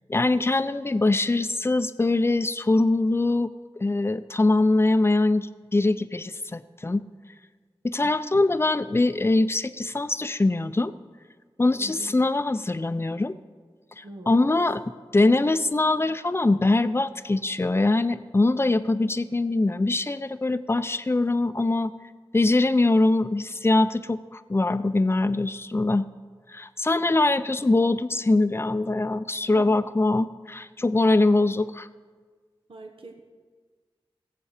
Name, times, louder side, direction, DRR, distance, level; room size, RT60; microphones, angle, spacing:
voice 1, 0.1-3.5 3.8-7.0 7.8-10.9 11.6-13.3 14.0-14.8 15.1-21.9 22.3-26.1 26.5-31.9, left 2 dB, 25° left, 13 dB, 0.5 m, -23 dB
voice 2, 11.8-12.1 14.0-14.6 32.7-33.2, right 1 dB, 70° right, 2 dB, 1.1 m, -43 dB
17.0 x 7.7 x 5.0 m, 1.5 s
wide cardioid pair, 50°, 9 cm